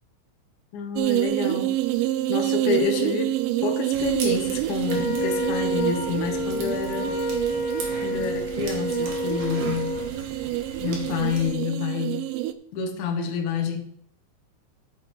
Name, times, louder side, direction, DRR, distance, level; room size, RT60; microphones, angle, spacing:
voice 1, 0.7-1.7 2.3-7.1 8.0-10.0 10.8-12.3 12.7-13.8, left 6 dB, 80° left, 4 dB, 1.7 m, -28 dB
sound 1, 1.0-12.5, right 15 dB, 85° right, 3.2 m, -27 dB
sound 2, 3.9-11.5, right 4 dB, 55° right, 2.6 m, -39 dB
Wind instrument woodwind instrument, 4.9-10.1, left 1 dB, 65° left, 2.7 m, -30 dB
11.5 x 7.5 x 4.5 m, 0.64 s
omnidirectional pair, 5.7 m